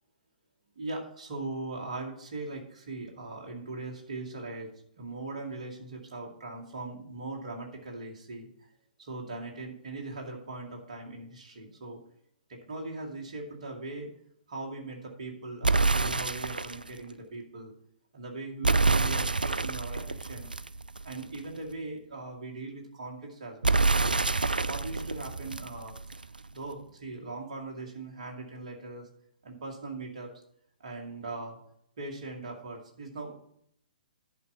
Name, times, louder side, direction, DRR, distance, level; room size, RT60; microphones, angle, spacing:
voice 1, 0.8-4.7 5.0-8.5 9.0-12.0 12.5-14.1 14.5-17.7 18.1-20.5 21.0-24.2 24.6-26.0 26.5-29.1 29.4-30.3 30.8-31.6 32.0-33.3, right 2 dB, 50° right, 0 dB, 2.2 m, -40 dB
sound 1, 15.6-16.9 18.6-21.4 23.6-26.4, right 3 dB, 80° right, 0.4 m, -27 dB
10.5 x 4.6 x 5.9 m, 0.70 s
figure-of-eight pair, 120°, 5 cm